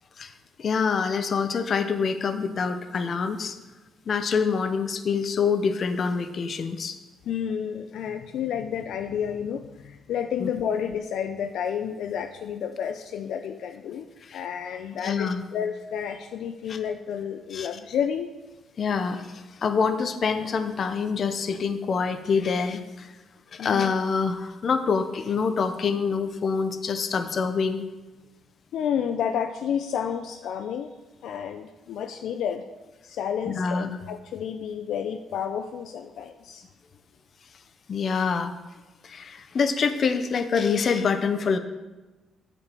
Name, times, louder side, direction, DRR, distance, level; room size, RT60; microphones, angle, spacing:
voice 1, 0.6-3.6 4.1-7.0 10.4-10.5 14.2-14.4 15.0-15.4 16.7-16.8 17.5-17.7 18.8-23.1 23.5-27.8 33.5-34.0 37.9-38.5 39.0-41.6, left 5 dB, 50° left, 9 dB, 0.8 m, -26 dB
voice 2, 7.3-14.1 14.3-18.3 23.6-23.9 28.7-30.9 31.2-32.6 33.0-36.6, left 8 dB, 75° left, 7 dB, 0.4 m, -30 dB
8.2 x 5.2 x 6.8 m, 1.2 s
cardioid pair, 90°, 0 cm